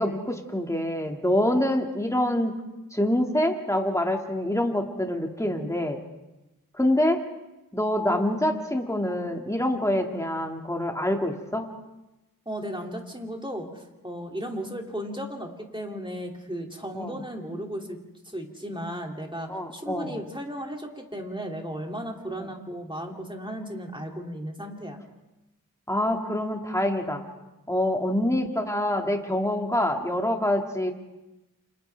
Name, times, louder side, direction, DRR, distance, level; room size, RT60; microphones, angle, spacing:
voice 1, 0.0-2.5 2.9-6.0 6.7-7.2 7.7-11.7 16.9-17.2 19.5-20.2 22.4-22.5 25.9-27.2 27.7-30.9, left 1 dB, 10° left, 2 dB, 2.1 m, -26 dB
voice 2, 12.5-18.0 18.2-25.0, equal, 15° right, 1 dB, 2.7 m, -35 dB
29.0 x 27.0 x 3.4 m, 1.0 s
wide cardioid pair, 50°, 34 cm